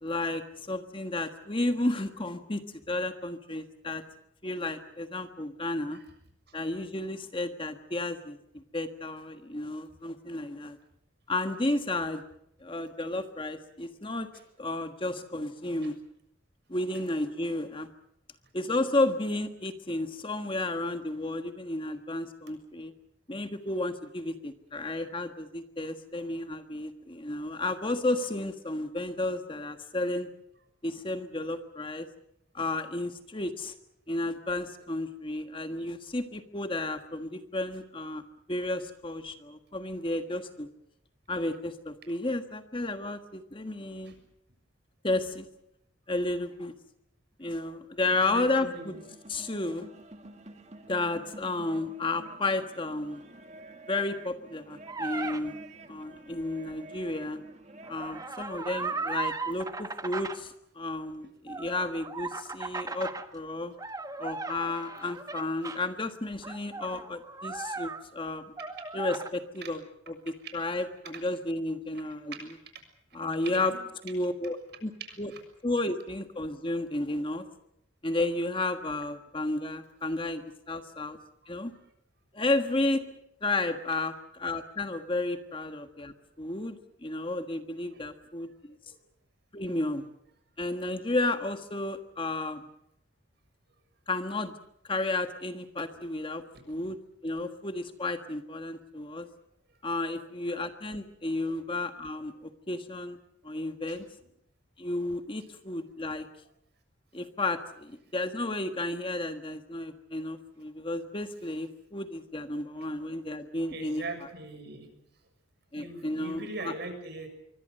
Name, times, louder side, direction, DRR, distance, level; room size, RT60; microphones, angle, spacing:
voice 1, 0.0-2.6 2.9-4.0 4.4-6.0 6.5-10.8 11.3-12.2 12.6-14.3 14.6-15.9 16.7-17.9 18.5-22.9 23.3-30.3 30.8-32.1 32.5-33.7 34.1-38.2 38.5-40.7 41.3-44.1 45.0-45.5 46.1-46.7 47.4-48.9 49.3-49.9 50.9-53.2 53.9-55.6 55.9-57.4 57.9-63.7 64.2-68.4 68.9-69.8 70.1-70.2 70.5-72.3 73.1-73.7 74.0-74.9 75.2-75.3 75.6-77.5 78.0-81.2 81.5-81.7 82.3-83.0 83.4-88.8 89.5-90.1 90.6-92.7 94.1-94.5 94.9-97.0 97.2-99.3 99.8-103.2 103.4-104.0 104.8-106.3 107.1-114.0 115.7-116.7, left 2 dB, 25° left, 7 dB, 1.5 m, -32 dB
voice 2, 48.0-49.0 57.8-57.9 69.6-69.7 70.4-70.5 72.1-72.2 73.1-73.8 75.0-75.4 81.4-81.5 87.9-88.0 88.9-89.0 96.5-96.6 103.9-104.0 113.7-114.9 115.8-117.3, right 2 dB, 55° right, 7 dB, 6.8 m, -41 dB
sound 1, 48.5-58.3, right 2 dB, 35° right, 2.1 m, -49 dB
sound 2, 54.9-55.4 57.8-60.4 61.5-63.3 63.8-65.8 66.4-68.3 68.6-69.3, right 3 dB, 20° right, 1.3 m, -37 dB
26.5 x 24.0 x 6.5 m, 0.78 s
head